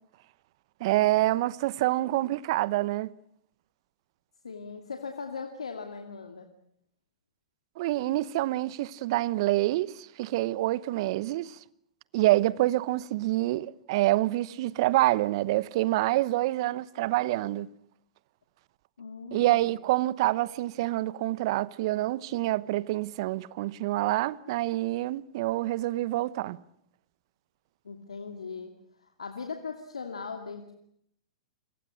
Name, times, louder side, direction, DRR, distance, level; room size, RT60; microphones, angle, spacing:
voice 1, 0.8-3.1 7.8-11.6 12.1-17.7 19.3-26.6, right 17 dB, 55° right, 1.0 m, -27 dB
voice 2, 4.4-6.5 19.0-19.8 27.8-28.7 29.0-30.7, left 5 dB, 80° left, 2.5 m, -39 dB
29.0 x 24.5 x 6.4 m
figure-of-eight pair, 105°, 3 cm